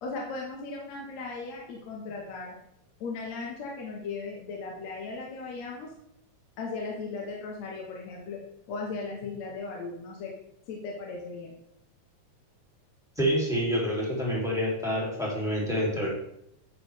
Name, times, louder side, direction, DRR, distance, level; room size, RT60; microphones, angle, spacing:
voice 1, 0.0-2.6 3.0-5.9 6.6-8.4 8.7-10.3 10.7-11.5, left 4 dB, 65° left, -2 dB, 2.4 m, -37 dB
voice 2, 13.2-16.1, equal, ahead, -5 dB, 2.1 m, -27 dB
9.5 x 6.2 x 3.3 m, 0.75 s
omnidirectional pair, 3.5 m